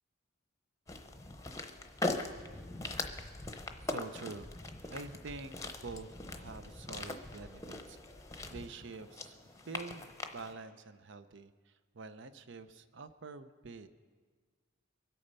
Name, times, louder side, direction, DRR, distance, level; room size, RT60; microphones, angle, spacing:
sound 1, 0.9-10.5, left 2 dB, 15° left, 0.8 m, -41 dB
voice 1, 3.8-8.0 8.5-9.4 9.6-13.9, right 3 dB, 60° right, 12 dB, 0.7 m, -47 dB
23.5 x 8.4 x 5.5 m, 1.5 s
head